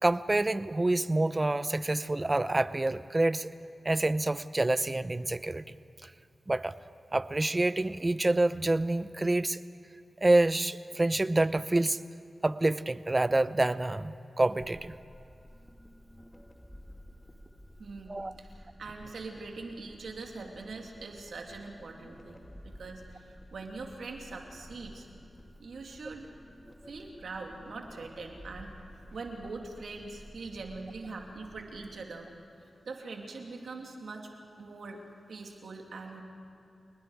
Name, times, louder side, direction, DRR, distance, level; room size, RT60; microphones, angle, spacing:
voice 1, 0.0-3.5 3.8-5.6 6.0-6.1 6.5-6.7 7.1-9.6 10.2-12.0 12.4-15.0 18.1-18.4, right 2 dB, 30° right, 15 dB, 0.7 m, -27 dB
sound 1, 14.6-32.1, equal, 10° left, 1.8 m, -52 dB
voice 2, 17.8-25.1 25.6-26.3 26.8-32.3 32.8-34.3 34.6-35.0 35.3-36.2, right 3 dB, 75° right, 2 dB, 2.6 m, -43 dB
29.0 x 19.5 x 4.9 m, 2.7 s
cardioid pair, 40°, 0 cm